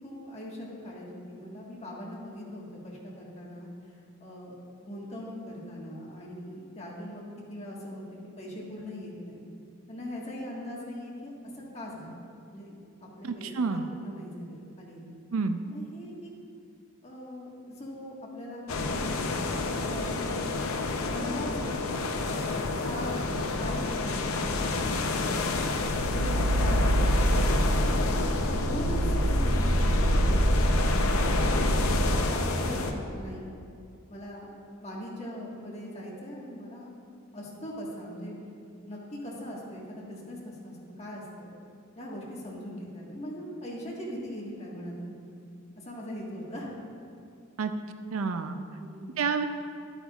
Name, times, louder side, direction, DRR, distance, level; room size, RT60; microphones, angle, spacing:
voice 1, 0.0-3.7 4.2-4.5 4.8-7.2 7.5-8.0 8.4-9.4 9.9-12.7 13.0-15.0 15.6-16.3 17.0-19.2 19.6-20.5 21.1-22.4 22.8-24.7 26.1-27.3 27.8-28.2 28.5-30.6 31.0-33.5 34.1-34.5 34.8-36.9 37.3-38.4 38.8-41.5 41.9-45.2 45.8-46.7 48.8-49.1, equal, 30° left, -4 dB, 1.6 m, -40 dB
voice 2, 13.6-13.9 15.3-15.6 47.6-47.7 48.1-48.6 49.2-49.4, right 5 dB, 80° right, 8 dB, 0.5 m, -28 dB
sound 1, 18.7-32.9, left 3 dB, 85° left, 0.6 m, -30 dB
sound 2, 25.8-32.2, right 1 dB, 45° right, 1.4 m, -25 dB
12.0 x 9.0 x 2.4 m, 2.4 s
head